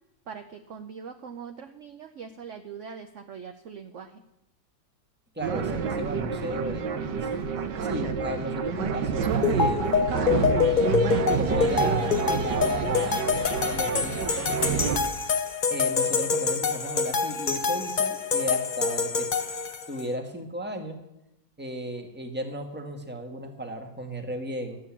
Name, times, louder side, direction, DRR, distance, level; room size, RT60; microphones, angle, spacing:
voice 1, 0.3-4.2, right 6 dB, 55° right, 7 dB, 0.9 m, -42 dB
voice 2, 5.3-10.0 11.4-13.3 13.6-15.4 15.7-19.3 19.9-21.0 21.6-24.8, right 1 dB, 5° right, 3 dB, 1.4 m, -35 dB
sound 1, 5.4-15.0, right 6 dB, 70° right, 1.5 m, -28 dB
sound 2, 9.4-20.0, left 5 dB, 55° left, 0.5 m, -26 dB
12.5 x 9.2 x 7.3 m, 0.88 s
omnidirectional pair, 2.0 m